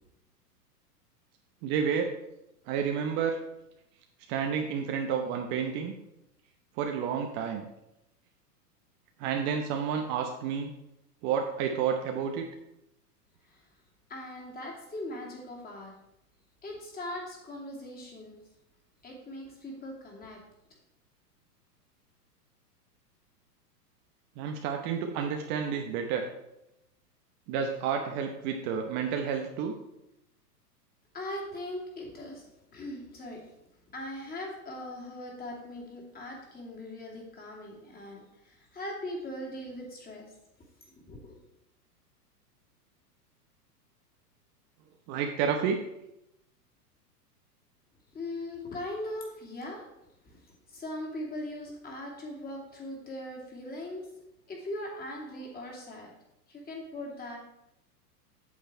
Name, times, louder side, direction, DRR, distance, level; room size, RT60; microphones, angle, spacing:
voice 1, 1.6-2.1 2.7-3.4 4.3-5.9 6.8-7.7 9.2-10.7 11.2-12.5 24.4-26.3 27.5-29.7 45.1-45.8, right 7 dB, 35° right, 3 dB, 0.9 m, -30 dB
voice 2, 14.1-15.9 16.6-18.4 19.0-20.4 31.1-33.5 33.9-40.3 40.9-41.4 48.1-49.9 50.2-50.4 50.7-54.1 54.5-56.1 56.5-57.4, left 1 dB, 20° left, -1 dB, 2.5 m, -40 dB
8.4 x 6.7 x 4.4 m, 0.85 s
hypercardioid pair, 110°, 49 cm